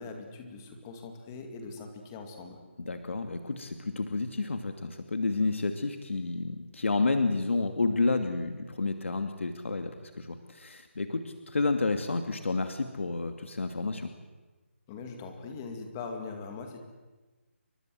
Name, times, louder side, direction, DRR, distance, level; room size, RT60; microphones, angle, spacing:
voice 1, 0.0-2.6 14.9-16.8, left 4 dB, 10° left, 4 dB, 2.2 m, -41 dB
voice 2, 2.8-14.1, left 3 dB, 70° left, 6 dB, 2.5 m, -30 dB
29.5 x 23.5 x 7.8 m, 1.2 s
hypercardioid pair, 180°, 7 cm